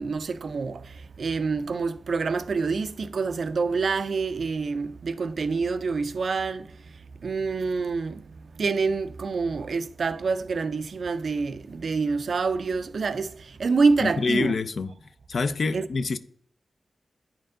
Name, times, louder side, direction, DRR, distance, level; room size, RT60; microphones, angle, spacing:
voice 1, 0.0-6.7 7.2-8.3 8.6-14.6 15.7-15.9, right 4 dB, 75° right, 0.4 m, -27 dB
voice 2, 14.0-15.0 15.3-16.2, left 4 dB, 75° left, 0.4 m, -26 dB
9.1 x 4.4 x 3.7 m
cardioid pair, 60°, 0 cm